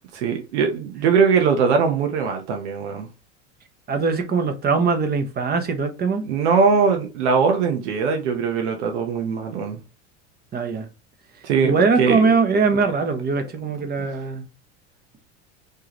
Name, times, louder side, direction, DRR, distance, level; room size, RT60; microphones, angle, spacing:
voice 1, 0.1-3.1 6.2-9.8 11.4-12.3 14.0-14.1, right 5 dB, 80° right, 1.1 m, -21 dB
voice 2, 3.9-6.2 10.5-10.9 11.6-14.5, right 4 dB, 30° right, 1.0 m, -21 dB
4.5 x 3.2 x 3.1 m
supercardioid pair, 110°, 34 cm